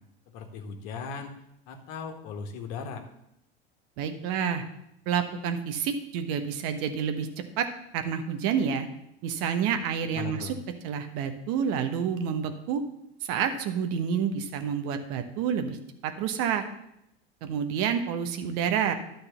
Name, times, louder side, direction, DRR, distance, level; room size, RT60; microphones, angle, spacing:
voice 1, 0.3-1.3 1.7-3.0 10.1-10.6, left 5 dB, 50° left, 5 dB, 1.5 m, -37 dB
voice 2, 4.0-4.6 5.1-7.3 7.6-7.7 7.9-8.9 9.2-10.5 10.8-12.8 13.2-15.8 16.0-16.6 17.4-18.9, right 7 dB, 50° right, 7 dB, 1.2 m, -28 dB
12.0 x 4.1 x 6.9 m, 0.81 s
figure-of-eight pair, 80°, 32 cm